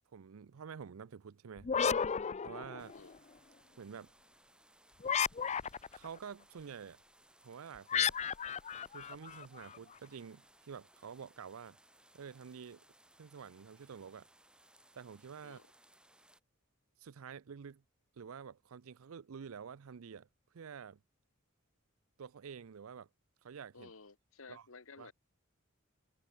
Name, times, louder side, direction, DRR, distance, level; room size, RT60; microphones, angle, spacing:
voice 1, 0.1-1.7 2.4-2.9 3.8-4.1 5.9-7.0 7.4-8.1 8.9-11.8 12.1-12.8 13.2-14.3 14.9-15.6 17.0-17.8 18.1-20.3 20.5-21.0 22.2-23.1 23.4-23.9 24.5-24.7 25.0-25.1, right 6 dB, 80° right, 0.5 m, -49 dB
sound 1, 1.6-3.2 5.0-6.1 7.9-9.8, left 7 dB, 30° left, 0.5 m, -34 dB
sound 2, 2.8-16.4, right 1 dB, 5° right, 6.2 m, -65 dB
voice 2, 23.7-25.1, left 4 dB, 65° left, 1.5 m, -54 dB
head